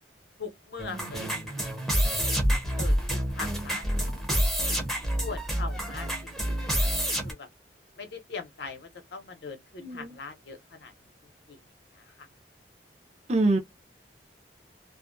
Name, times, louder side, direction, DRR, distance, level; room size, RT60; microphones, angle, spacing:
voice 1, 0.4-1.4 1.9-4.5 5.2-6.1 6.4-7.5 8.0-10.9 11.5-11.6 11.9-12.3, left 5 dB, 70° left, 0.7 m, -42 dB
sound 1, 0.8-7.3, equal, ahead, 0.7 m, -28 dB
voice 2, 9.8-10.1 13.3-13.6, right 2 dB, 40° right, 0.6 m, -24 dB
2.4 x 2.1 x 2.5 m
head